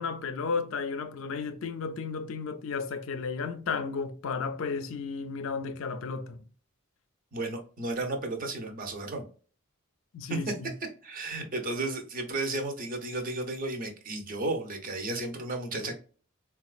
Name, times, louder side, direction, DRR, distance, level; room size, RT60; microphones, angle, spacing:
voice 1, 0.0-6.4 10.1-10.7, left 5 dB, 60° left, 0.4 m, -33 dB
voice 2, 7.3-9.2 10.3-10.4 11.0-15.9, right 2 dB, 40° right, 0.7 m, -33 dB
4.0 x 2.3 x 2.4 m
head